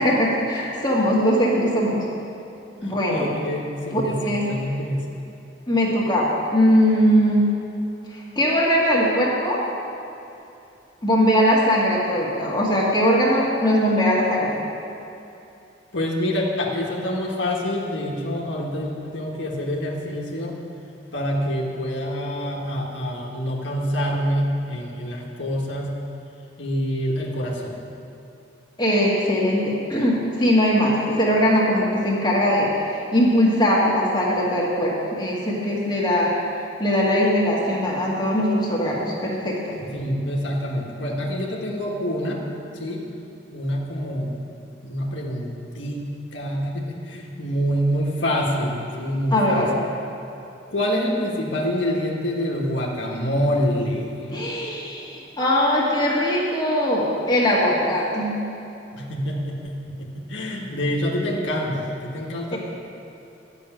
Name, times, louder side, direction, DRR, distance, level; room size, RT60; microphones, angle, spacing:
voice 1, 0.0-2.1 2.8-3.3 3.9-4.5 5.7-7.5 8.1-9.6 11.0-14.6 28.8-36.3 36.8-39.7 49.3-49.8 54.3-58.4 62.5-62.6, equal, 25° left, -5 dB, 1.9 m, -20 dB
voice 2, 2.8-4.2 4.4-5.0 15.9-20.5 21.1-25.9 26.6-27.8 39.7-42.4 42.7-43.0 43.5-44.4 44.8-49.6 50.7-54.3 58.9-62.6, equal, 85° left, -2 dB, 1.5 m, -26 dB
11.5 x 6.8 x 9.1 m, 2.8 s
head